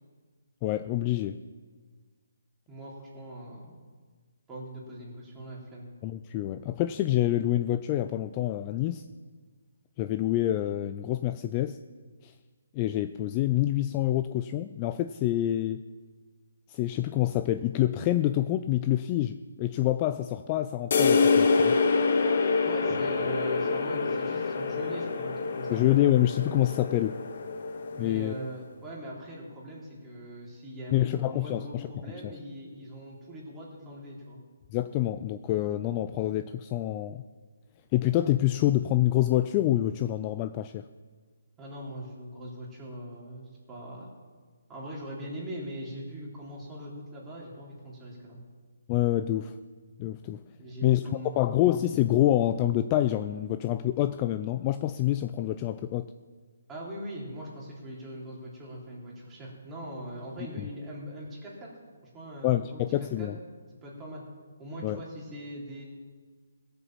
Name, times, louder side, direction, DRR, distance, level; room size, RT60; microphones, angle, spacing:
voice 1, 0.6-1.4 6.0-9.0 10.0-11.8 12.2-12.3 12.7-15.8 16.7-21.8 25.7-27.2 28.0-28.3 30.9-32.3 34.7-37.2 37.9-40.8 48.9-49.6 50.0-50.4 50.8-51.1 51.4-56.1 60.6-60.7 62.4-63.4 64.8-65.0, left 13 dB, 20° left, 11 dB, 0.4 m, -27 dB
voice 2, 2.7-3.8 4.5-5.9 22.6-25.8 27.9-34.4 41.6-44.1 44.7-48.4 50.6-51.6 56.7-61.7 62.1-62.8 63.2-63.3 63.8-64.2 64.6-65.8, right 1 dB, 10° right, -5 dB, 3.4 m, -41 dB
sound 1, 20.9-28.4, left 4 dB, 50° left, 1.3 m, -26 dB
17.0 x 7.0 x 7.4 m, 1.5 s
hypercardioid pair, 160°, 0 cm